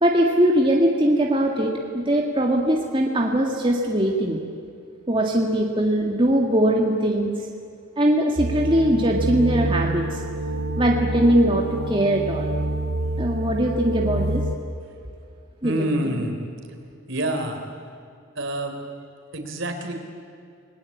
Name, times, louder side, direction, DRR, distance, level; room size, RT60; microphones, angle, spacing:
voice 1, 0.0-4.4 5.1-7.3 8.0-10.2 10.8-12.5 13.2-14.4 15.6-15.7 16.0-16.2, right 1 dB, 25° right, 0 dB, 2.0 m, -21 dB
sound 1, 8.4-14.6, right 1 dB, 80° right, 1.2 m, -27 dB
voice 2, 15.6-16.4 17.1-17.6 18.4-18.8 19.3-19.9, right 1 dB, 60° right, 5 dB, 3.8 m, -27 dB
29.5 x 20.5 x 8.7 m, 2.4 s
head